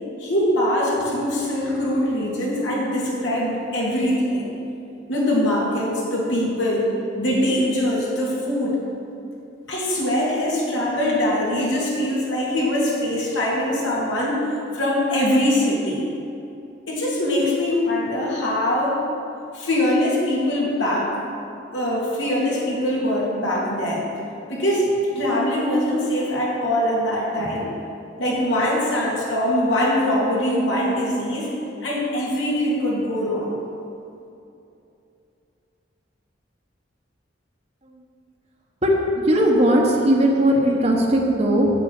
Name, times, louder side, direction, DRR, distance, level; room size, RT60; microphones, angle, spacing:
voice 1, 0.2-4.5 5.1-6.9 7.1-8.8 9.7-14.4 14.7-16.1 16.9-19.0 19.5-21.1 21.7-24.1 24.5-24.9 25.2-27.7 28.2-31.5 31.8-33.6, left 1 dB, 80° left, -5 dB, 2.6 m, -22 dB
voice 2, 38.8-41.7, equal, 35° right, -1 dB, 1.1 m, -18 dB
8.1 x 7.8 x 6.6 m, 2.8 s
head